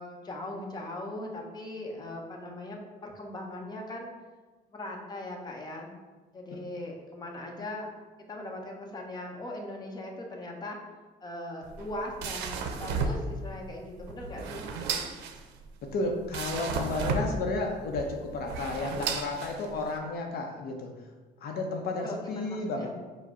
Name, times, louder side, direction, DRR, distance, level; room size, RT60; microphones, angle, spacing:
voice 1, 0.0-4.1 4.7-5.9 6.3-7.9 8.3-10.8 11.2-14.6 22.0-22.9, left 1 dB, 25° left, 0 dB, 0.7 m, -39 dB
sound 1, 11.6-20.0, right 4 dB, 85° right, 0.5 m, -34 dB
voice 2, 15.8-20.9 21.4-22.9, left 2 dB, 65° left, 2 dB, 0.6 m, -32 dB
4.7 x 2.0 x 4.7 m, 1.3 s
cardioid pair, 110°, 17 cm